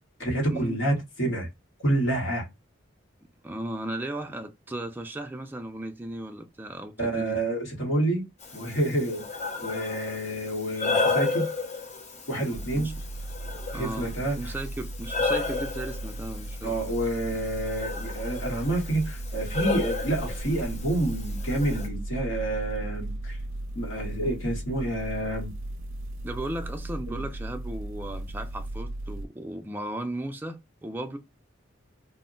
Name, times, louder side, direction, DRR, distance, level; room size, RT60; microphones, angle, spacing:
voice 1, 0.2-1.5 1.8-2.5 7.0-8.2 8.5-9.2 9.6-11.5 12.3-12.9 13.7-14.5 16.6-23.4 23.7-25.5 27.1-27.2, right 1 dB, 75° left, 1.1 m, -28 dB
voice 2, 3.4-7.4 12.7-12.9 13.7-14.1 14.4-16.8 26.2-31.2, right 1 dB, 10° right, 0.3 m, -36 dB
Breathing, 8.4-21.9, left 3 dB, 35° left, 0.7 m, -33 dB
sound 1, 12.5-29.3, right 1 dB, 90° right, 0.4 m, -36 dB
2.1 x 2.1 x 3.7 m
head